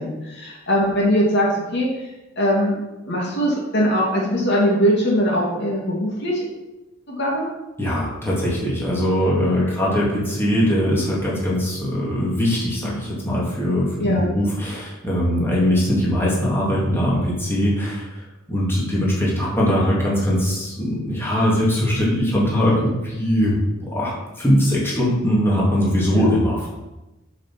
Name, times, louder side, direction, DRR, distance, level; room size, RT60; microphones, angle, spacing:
voice 1, 0.0-1.9 2.4-2.8 3.1-6.4 7.1-7.5 12.8-13.0 14.0-14.4 26.1-26.3, equal, 60° left, -3 dB, 2.6 m, -21 dB
voice 2, 7.8-18.2 18.5-26.7, equal, 10° left, -6 dB, 2.6 m, -21 dB
7.1 x 7.1 x 6.2 m, 1.0 s
head